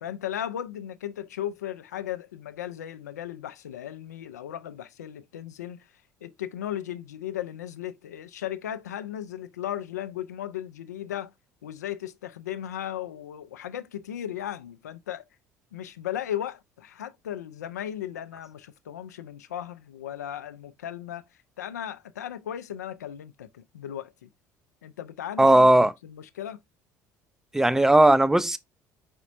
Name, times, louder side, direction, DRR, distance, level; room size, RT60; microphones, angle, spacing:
voice 1, 0.0-5.9 6.2-11.3 11.6-15.2 15.7-21.2 21.6-24.3 24.8-26.6, left 11 dB, 75° left, 0.4 m, -36 dB
voice 2, 25.4-25.9 27.5-28.6, right 1 dB, 5° right, 0.4 m, -17 dB
4.9 x 4.2 x 2.5 m
figure-of-eight pair, 60°, 9 cm